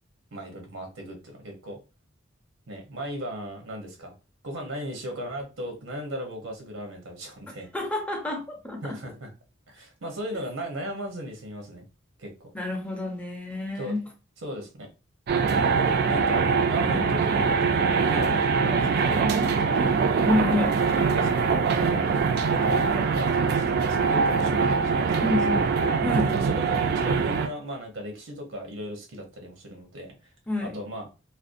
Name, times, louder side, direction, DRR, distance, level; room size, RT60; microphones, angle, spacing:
voice 1, 0.3-1.8 2.7-4.1 4.4-7.7 8.8-9.3 9.7-11.9 12.2-12.5 13.7-13.9 14.4-14.9 16.1-19.5 19.7-20.0 20.9-22.1 22.5-26.0 26.3-30.1 30.6-31.1, equal, 80° right, 0.7 m, -37 dB
voice 2, 7.7-9.0 12.5-14.1 16.9-17.0 20.2-20.8 25.2-25.7 26.0-26.4 30.5-30.8, left 2 dB, 5° left, 0.6 m, -28 dB
sound 1, 15.3-27.5, right 5 dB, 55° right, 0.3 m, -23 dB
2.5 x 2.0 x 2.4 m
head